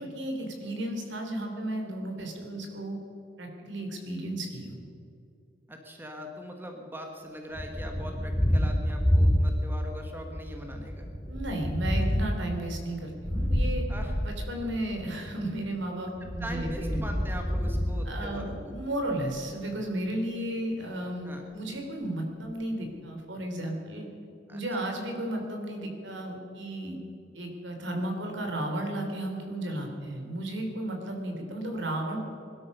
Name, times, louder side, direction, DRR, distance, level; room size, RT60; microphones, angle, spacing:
voice 1, 0.0-3.0 3.4-4.8 11.3-13.8 14.2-17.2 18.1-24.1 24.5-27.0 27.3-32.2, right 1 dB, 65° right, 2 dB, 3.3 m, -34 dB
voice 2, 5.7-11.1 13.9-14.1 16.2-18.7 21.2-21.4 24.5-24.9, equal, 10° right, 3 dB, 1.4 m, -41 dB
Thunder, 7.5-10.0 10.3-15.1 16.2-18.8, equal, 5° left, 0.6 m, -28 dB
21.5 x 12.5 x 5.5 m, 2.8 s
head